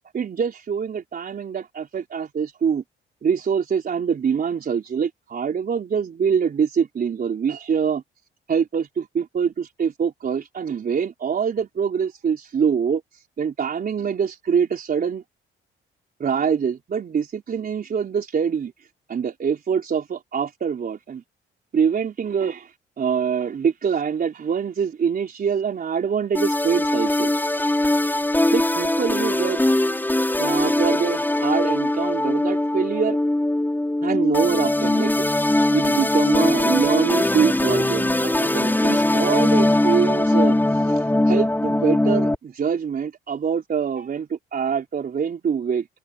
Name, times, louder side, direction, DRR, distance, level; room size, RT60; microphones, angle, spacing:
voice 1, 0.1-2.8 3.2-8.0 8.5-15.2 16.2-18.7 19.1-21.2 21.7-27.7 28.5-29.6 30.3-33.2 34.0-45.9, right 7 dB, 50° right, 4.0 m, -24 dB
sound 1, 26.3-42.4, left 1 dB, 10° left, 6.2 m, -21 dB
cardioid pair, 90°, 20 cm